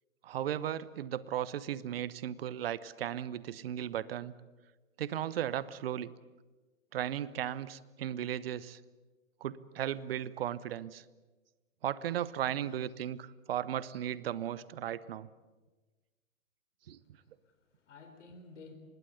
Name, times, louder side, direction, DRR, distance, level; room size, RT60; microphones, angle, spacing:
voice 1, 0.2-4.3 5.0-6.1 6.9-8.8 9.4-11.0 11.8-15.3 16.9-17.0, right 11 dB, 45° right, 19 dB, 1.0 m, -36 dB
voice 2, 16.8-18.7, left 3 dB, 60° left, 6 dB, 4.5 m, -54 dB
25.0 x 20.5 x 8.3 m, 1.2 s
figure-of-eight pair, 120°, 40 cm